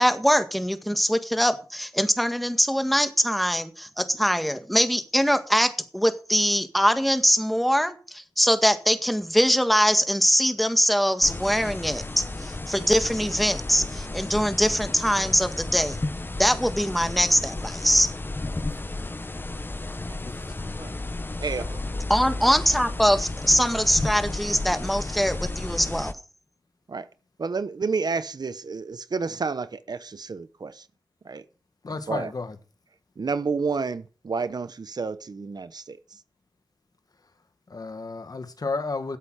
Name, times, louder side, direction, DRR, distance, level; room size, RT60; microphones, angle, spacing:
voice 1, 0.0-16.0 16.4-18.1 22.1-26.1, equal, ahead, 1.8 m, -22 dB
sound 1, 11.2-26.1, left 2 dB, 25° left, 1.1 m, -33 dB
voice 2, 20.2-20.8 31.8-32.6 37.7-39.2, left 3 dB, 45° left, 1.8 m, -32 dB
voice 3, 21.4-22.0 26.9-27.1 27.4-30.9 31.2-31.4 32.1-32.3 33.2-36.2, right 4 dB, 50° right, 0.9 m, -30 dB
13.5 x 8.1 x 6.4 m
wide cardioid pair, 75°, 9 cm